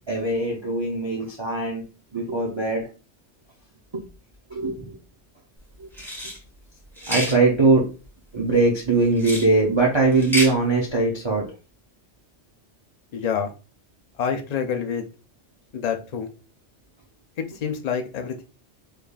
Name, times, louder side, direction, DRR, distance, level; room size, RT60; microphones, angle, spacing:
voice 1, 0.1-1.8 2.1-2.9 3.9-4.0 4.5-5.0 5.8-5.9 7.1-7.9 8.3-11.5, right 3 dB, 30° right, -1 dB, 0.6 m, -21 dB
sound 1, 5.9-6.4 7.0-7.4 9.2-9.5 10.1-10.5, left 1 dB, ahead, 1.3 m, -28 dB
voice 2, 13.1-13.5 14.2-15.1 15.7-16.3 17.4-18.4, left 7 dB, 50° left, 6 dB, 0.5 m, -27 dB
3.6 x 3.3 x 2.3 m, 0.33 s
omnidirectional pair, 1.2 m